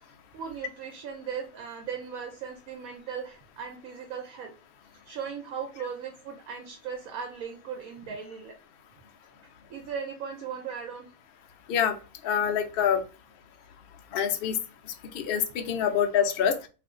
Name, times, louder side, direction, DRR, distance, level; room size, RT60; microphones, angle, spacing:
voice 1, 0.3-4.5 5.0-8.5 9.7-11.1, right 7 dB, 70° right, 3 dB, 1.0 m, -37 dB
voice 2, 12.2-13.0 14.1-14.6 15.1-16.7, left 8 dB, 75° left, 4 dB, 0.5 m, -25 dB
2.5 x 2.5 x 3.6 m, 0.33 s
omnidirectional pair, 1.6 m